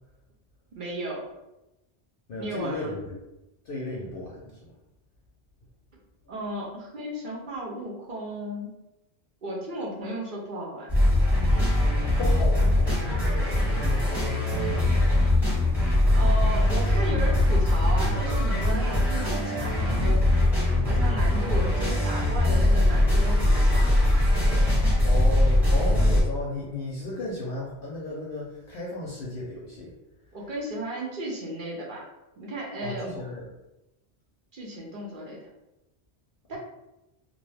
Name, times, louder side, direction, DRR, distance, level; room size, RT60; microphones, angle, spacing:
voice 1, 0.7-1.3 2.4-2.9 6.3-8.7 9.4-11.1 16.1-20.3 20.8-24.1 30.3-32.0 32.4-33.1 34.5-35.4 36.5-36.6, right 1 dB, 55° right, -3 dB, 0.7 m, -34 dB
voice 2, 2.3-3.2 3.6-4.6 12.2-15.0 25.0-29.9 32.8-33.5, left 2 dB, 60° left, -4 dB, 0.7 m, -35 dB
sound 1, 10.9-26.2, left 1 dB, ahead, 1.0 m, -22 dB
2.4 x 2.1 x 3.2 m, 0.94 s
omnidirectional pair, 1.2 m